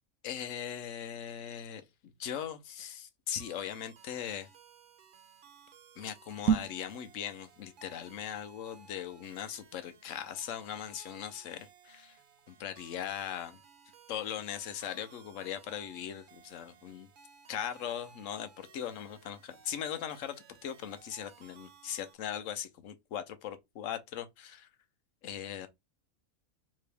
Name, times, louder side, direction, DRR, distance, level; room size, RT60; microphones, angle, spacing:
voice 1, 0.2-1.8 2.2-4.5 6.0-12.2 12.5-13.6 14.1-17.1 17.5-24.7 25.2-25.7, left 9 dB, 65° left, 1.0 m, -39 dB
sound 1, 3.4-22.1, right 6 dB, 55° right, 0.6 m, -58 dB
sound 2, 6.4-6.9, right 7 dB, 70° right, 0.9 m, -28 dB
3.6 x 3.0 x 3.3 m
omnidirectional pair, 1.5 m